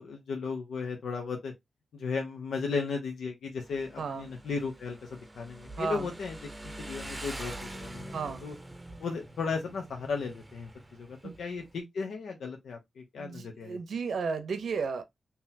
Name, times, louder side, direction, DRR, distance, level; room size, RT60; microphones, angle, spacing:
voice 1, 0.0-1.5 1.9-6.4 6.6-8.5 9.0-13.8, left 4 dB, 90° left, 0.7 m, -35 dB
Motorcycle, 3.6-11.8, right 1 dB, 15° right, 0.7 m, -45 dB
voice 2, 4.0-4.3 5.8-6.1 8.1-8.4 11.2-11.4 13.2-15.0, right 5 dB, 80° right, 0.7 m, -33 dB
3.8 x 2.8 x 2.6 m
cardioid pair, 70°, 0 cm